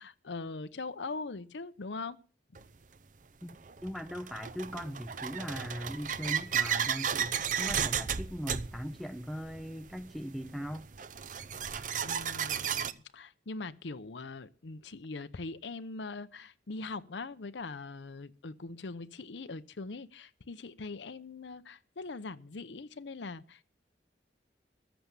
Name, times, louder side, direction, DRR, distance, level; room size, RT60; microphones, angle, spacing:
voice 1, 0.0-2.2 12.0-23.6, left 3 dB, 90° left, 0.7 m, -42 dB
sound 1, 2.5-2.6 3.5-12.9, right 7 dB, 45° right, 0.7 m, -34 dB
voice 2, 3.4-10.9, equal, ahead, 0.5 m, -40 dB
14.0 x 7.0 x 7.9 m
head